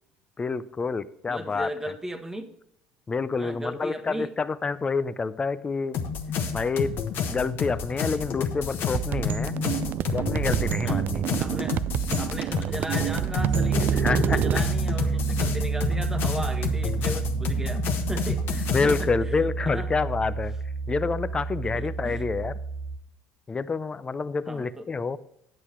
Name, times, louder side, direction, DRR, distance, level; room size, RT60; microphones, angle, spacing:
voice 1, 0.4-1.7 3.1-6.0 6.5-6.9 7.3-9.6 10.1-11.2 14.0-14.4 18.7-20.5 20.9-22.6 23.5-25.2, left 4 dB, 25° left, 15 dB, 0.5 m, -28 dB
voice 2, 1.3-2.5 3.4-4.3 10.8-11.1 11.4-11.8 12.2-19.9 21.6-22.2 24.4-24.9, right 1 dB, 10° right, 7 dB, 1.2 m, -36 dB
sound 1, 5.9-19.0, left 6 dB, 60° left, 1.2 m, -30 dB
sound 2, 8.9-14.6, right 11 dB, 50° right, 0.3 m, -28 dB
Piano, 13.4-23.0, right 5 dB, 75° right, 1.2 m, -28 dB
9.7 x 7.9 x 4.4 m, 0.76 s
hypercardioid pair, 75°, 4 cm